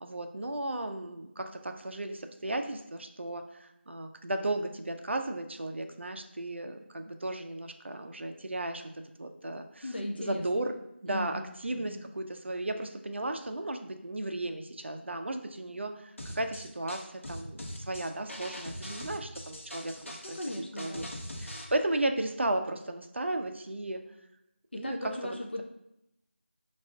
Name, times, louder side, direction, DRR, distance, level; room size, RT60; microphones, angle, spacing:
voice 1, 0.0-8.8 9.2-9.9 10.2-10.7 11.0-20.4 20.8-21.1 21.4-24.0 24.7-25.0 25.2-25.6, right 1 dB, 70° right, 6 dB, 0.4 m, -35 dB
voice 2, 9.8-10.4 11.1-12.0 20.2-21.1 24.7-25.6, left 1 dB, 55° left, 1 dB, 0.3 m, -38 dB
sound 1, 16.2-21.7, left 1 dB, 85° left, 0.7 m, -42 dB
4.5 x 2.3 x 2.2 m, 0.84 s
figure-of-eight pair, 180°, 7 cm